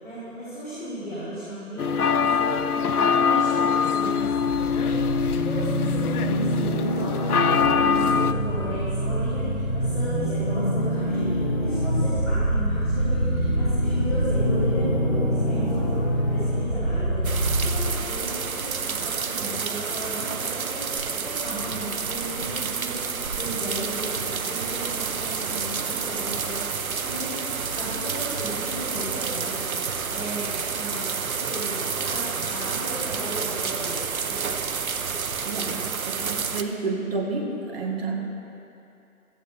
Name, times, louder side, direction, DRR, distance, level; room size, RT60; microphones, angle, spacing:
voice 1, 0.0-4.3 4.8-17.3 17.6-34.7, equal, 5° left, -19 dB, 2.8 m, -35 dB
sound 1, 1.8-8.3, left 6 dB, 85° left, 0.6 m, -23 dB
sound 2, 4.2-17.9, equal, 20° left, 0.8 m, -25 dB
sound 3, 17.2-36.6, right 6 dB, 70° right, 0.8 m, -29 dB
voice 2, 35.4-35.8 36.1-38.1, right 3 dB, 40° right, -1 dB, 1.9 m, -29 dB
15.5 x 14.5 x 2.7 m, 2.7 s
figure-of-eight pair, 165°, 43 cm